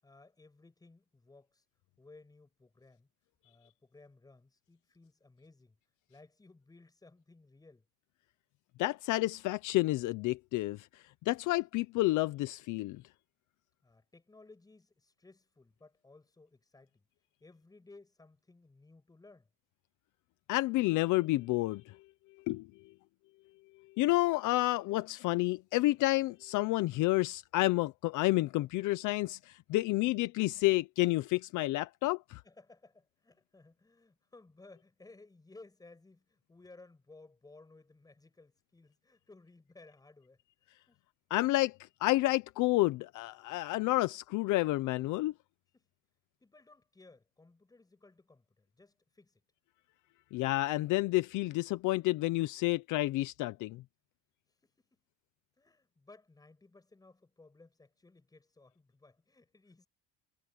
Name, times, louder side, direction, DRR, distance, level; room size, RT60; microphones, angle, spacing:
voice 1, 0.0-1.6 2.0-3.1 3.4-5.8 6.1-7.9 13.8-17.0 17.4-19.5 32.4-40.4 40.9-41.0 45.7-45.9 46.4-49.4 54.6-55.0 55.6-59.9, left 3 dB, 10° left, 7.7 m, -59 dB
voice 2, 8.8-13.0 20.5-22.0 22.5-22.7 24.0-32.4 41.3-45.3 50.3-53.8, left 19 dB, 55° left, 0.7 m, -30 dB
cardioid pair, 165°, 35 cm